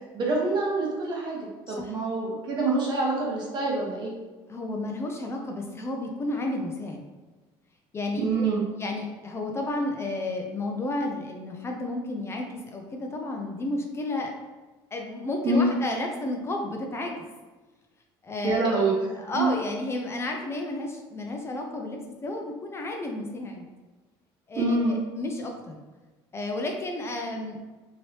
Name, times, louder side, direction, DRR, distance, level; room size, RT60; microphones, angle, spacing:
voice 1, 0.1-4.1 8.2-8.6 15.4-15.7 18.4-19.6 24.5-24.9, right 2 dB, 50° right, -3 dB, 1.0 m, -26 dB
voice 2, 4.5-7.0 7.9-8.5 8.8-14.3 14.9-17.3 18.2-18.9 19.1-23.7 24.5-25.8 26.3-27.6, left 2 dB, 25° left, 2 dB, 0.4 m, -32 dB
3.1 x 2.9 x 2.8 m, 1.3 s
cardioid pair, 110°, 10 cm